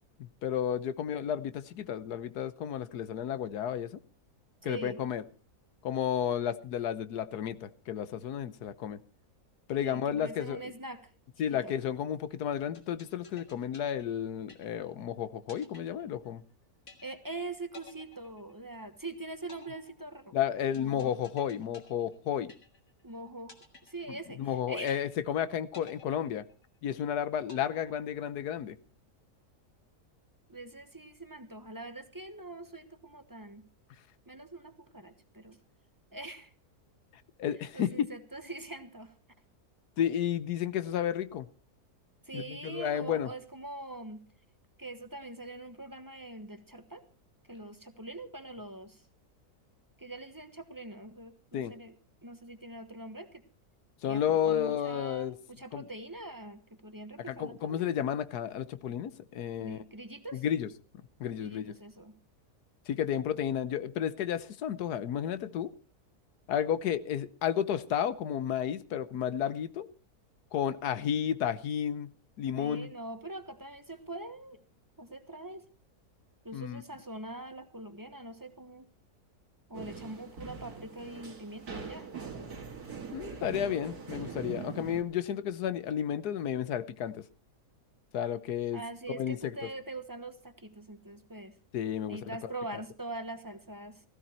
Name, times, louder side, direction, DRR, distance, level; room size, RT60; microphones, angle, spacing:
voice 1, 0.2-4.0 4.6-5.2 5.8-9.0 9.7-10.6 11.4-16.4 20.3-22.5 24.1-26.4 26.8-28.8 37.4-38.1 40.0-41.5 42.3-43.3 51.5-51.7 54.0-55.3 55.7-55.9 57.3-59.8 60.3-60.7 61.2-61.7 62.9-65.7 66.5-69.9 70.5-72.1 72.4-72.9 76.5-76.8 83.1-87.2 88.1-88.8 89.1-89.5 91.7-92.2, left 9 dB, 90° left, 1.4 m, -32 dB
voice 2, 4.6-5.0 9.7-11.0 11.5-11.7 17.0-20.3 20.8-21.1 23.0-25.1 30.5-33.6 34.3-35.6 36.1-36.5 37.7-39.1 42.2-44.2 44.8-47.0 47.5-49.0 50.0-52.0 52.2-53.4 54.0-57.9 59.6-60.4 61.4-62.1 72.5-74.6 75.0-75.6 76.4-78.9 79.7-82.1 88.7-91.6 92.1-94.0, right 2 dB, 15° right, 1.1 m, -43 dB
sound 1, 12.7-15.0 15.5-16.5 16.9-17.4 17.7-19.0 19.5-23.0 23.5-24.5 24.9-25.4 25.7-27.0 27.5-28.5, left 3 dB, 60° left, 2.6 m, -54 dB
sound 2, 79.7-85.0, right 5 dB, 70° right, 2.7 m, -42 dB
15.5 x 15.5 x 4.4 m
omnidirectional pair, 1.6 m